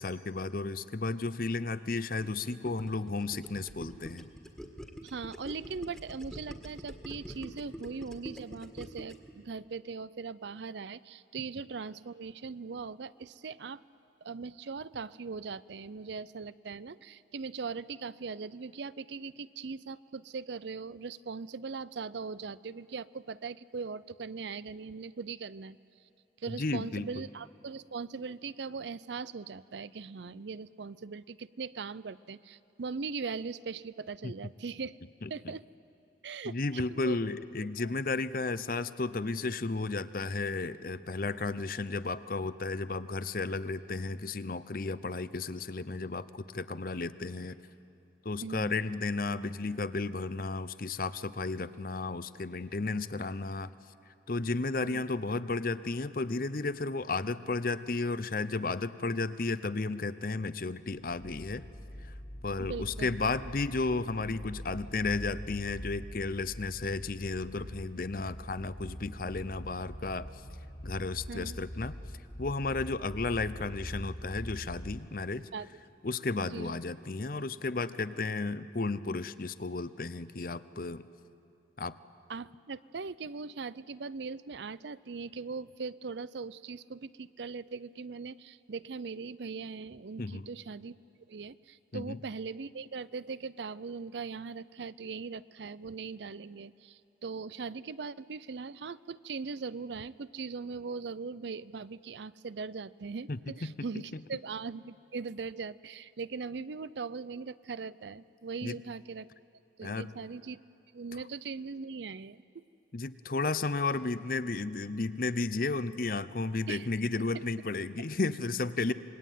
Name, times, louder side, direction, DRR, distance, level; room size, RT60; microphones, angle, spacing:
voice 1, 0.0-4.3 26.5-27.1 34.2-34.3 35.2-35.3 36.4-47.6 48.2-53.7 54.3-61.6 62.4-70.3 70.8-71.9 72.4-75.5 76.0-81.0 81.8-82.0 90.2-90.5 91.9-92.2 103.3-103.7 108.6-108.7 109.8-110.1 112.9-118.9, left 3 dB, 50° left, 14 dB, 0.7 m, -33 dB
Gurgling, 2.2-9.3, equal, 5° left, 1.8 m, -45 dB
voice 2, 5.0-13.8 14.2-25.8 26.4-35.0 35.3-35.6 36.2-37.2 48.4-48.8 54.8-55.0 62.6-63.2 71.3-71.6 75.5-75.7 76.5-76.8 82.3-91.0 91.3-109.3 109.8-110.6 110.9-112.6 116.7-116.9 117.3-117.4, right 4 dB, 70° right, 17 dB, 0.5 m, -40 dB
sound 1, 61.1-75.0, equal, 30° left, 1.8 m, -44 dB
27.0 x 22.0 x 9.3 m, 2.6 s
head